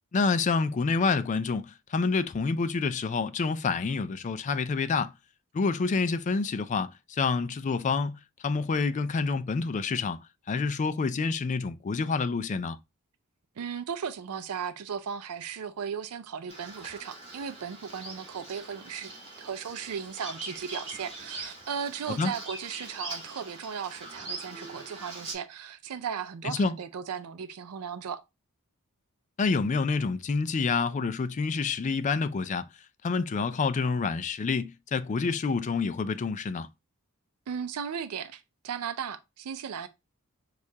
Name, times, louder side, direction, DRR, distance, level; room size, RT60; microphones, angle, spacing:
voice 1, 0.1-5.1 5.5-10.2 10.5-12.8 22.2-22.3 26.6-26.7 29.4-32.6 33.0-36.7, left 4 dB, 35° left, 0.3 m, -28 dB
voice 2, 13.6-19.1 19.4-28.2 37.5-39.9, right 7 dB, 90° right, 0.5 m, -36 dB
Bird vocalization bird call bird song, 16.5-25.3, right 2 dB, 25° right, 2.6 m, -42 dB
6.3 x 2.4 x 2.7 m
head